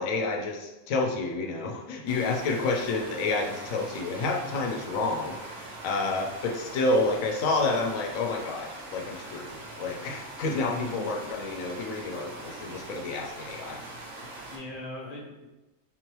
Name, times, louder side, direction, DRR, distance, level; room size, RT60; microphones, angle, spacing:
voice 1, 0.0-13.8 14.2-14.3, left 3 dB, 85° left, 1 dB, 1.0 m, -29 dB
sound 1, 2.1-14.6, right 2 dB, 70° right, 1.2 m, -42 dB
voice 2, 10.7-11.3 14.5-15.5, left 1 dB, 45° left, -4 dB, 1.0 m, -39 dB
3.7 x 2.9 x 3.0 m, 1.0 s
omnidirectional pair, 1.4 m